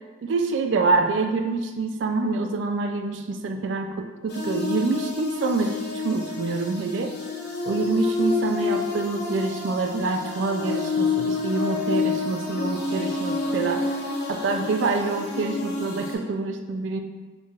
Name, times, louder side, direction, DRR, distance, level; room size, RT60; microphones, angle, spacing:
voice 1, 0.2-7.1 7.6-14.0 14.3-17.0, right 3 dB, 70° right, 5 dB, 0.3 m, -26 dB
sound 1, 4.3-16.1, left 4 dB, 55° left, 0.7 m, -28 dB
4.5 x 3.4 x 2.3 m, 1.3 s
head